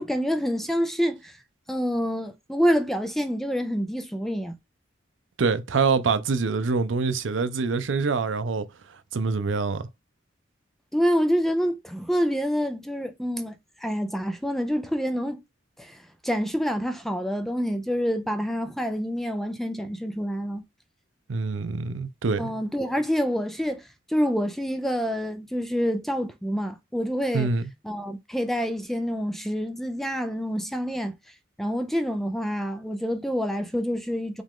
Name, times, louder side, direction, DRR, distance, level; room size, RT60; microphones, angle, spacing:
voice 1, 0.0-1.3 1.7-4.6 10.9-15.4 15.8-20.6 22.4-27.5 27.8-31.1 31.6-34.4, equal, ahead, 0.5 m, -27 dB
voice 2, 5.4-8.7 9.1-9.9 21.3-22.5 27.3-27.7, right 4 dB, 75° right, 0.6 m, -25 dB
5.1 x 2.4 x 3.6 m
head